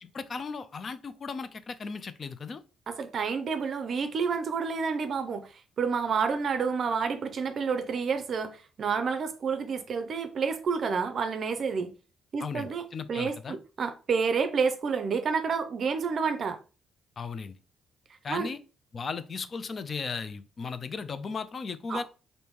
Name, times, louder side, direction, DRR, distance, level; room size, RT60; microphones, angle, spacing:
voice 1, 0.0-2.6 12.4-13.6 17.2-17.5 18.2-18.6 18.9-22.0, left 5 dB, 45° left, 0.4 m, -36 dB
voice 2, 2.9-11.9 12.3-16.6 18.3-18.5 21.9-22.0, right 5 dB, 55° right, 0.5 m, -29 dB
2.9 x 2.6 x 3.4 m
cardioid pair, 90°, 0 cm